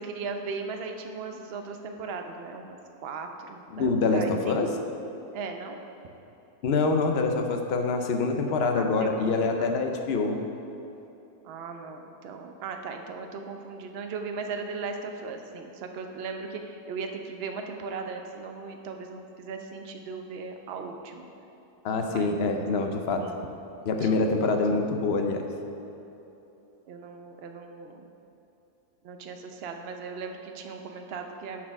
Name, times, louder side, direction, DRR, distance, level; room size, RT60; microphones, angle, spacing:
voice 1, 0.0-2.8 3.0-4.6 5.3-5.8 8.7-9.8 11.4-21.3 22.0-22.3 23.2-23.4 24.0-24.3 26.8-28.1 29.0-31.7, right 4 dB, 55° right, 4 dB, 0.7 m, -38 dB
voice 2, 3.7-4.7 6.6-10.4 21.8-23.2 23.9-25.5, left 3 dB, 60° left, 4 dB, 0.7 m, -25 dB
8.4 x 4.4 x 5.9 m, 3.0 s
omnidirectional pair, 1.6 m